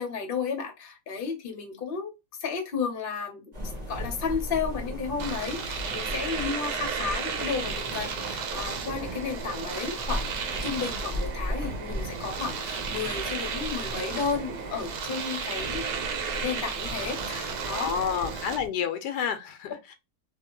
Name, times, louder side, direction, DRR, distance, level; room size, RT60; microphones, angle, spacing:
voice 1, 0.0-2.1 2.4-3.4 3.9-10.3 10.6-15.9 16.3-18.1, left 5 dB, 40° left, 0.9 m, -33 dB
sound 1, 3.5-18.7, equal, 30° right, 1.0 m, -38 dB
Domestic sounds home sounds, 5.2-18.6, right 6 dB, 70° right, 1.2 m, -34 dB
voice 2, 17.7-19.9, left 7 dB, 80° left, 1.2 m, -30 dB
2.7 x 2.5 x 2.9 m
omnidirectional pair, 1.8 m